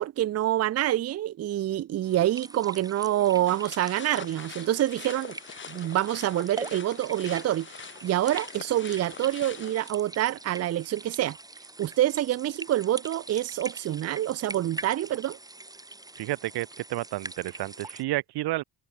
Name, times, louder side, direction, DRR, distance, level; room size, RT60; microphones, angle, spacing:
voice 1, 0.0-5.4 5.7-7.7 8.0-11.4 11.8-15.4, right 13 dB, 40° right, 0.6 m, -26 dB
sound 1, 2.0-18.0, right 2 dB, 10° right, 3.3 m, -43 dB
sound 2, 3.5-9.9, left 6 dB, 30° left, 2.1 m, -44 dB
voice 2, 16.2-18.6, right 17 dB, 70° right, 1.1 m, -31 dB
cardioid pair, 150°, 41 cm